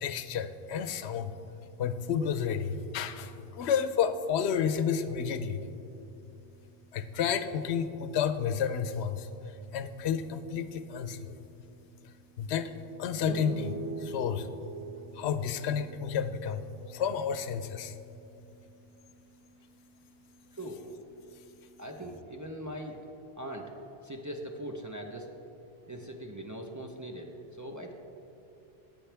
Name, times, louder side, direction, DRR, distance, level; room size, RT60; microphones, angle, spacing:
voice 1, 0.0-1.3 1.8-5.6 6.9-11.3 12.0-14.5 15.1-20.6 21.2-21.8, left 7 dB, 90° left, 11 dB, 0.8 m, -32 dB
sound 1, 13.2-16.8, right 4 dB, 90° right, 1.6 m, -40 dB
voice 2, 20.5-20.8 21.8-23.0 23.4-23.7 24.0-25.3 25.9-27.9, right 1 dB, 20° right, 1 dB, 0.6 m, -41 dB
15.5 x 8.8 x 3.4 m, 2.8 s
omnidirectional pair, 1.1 m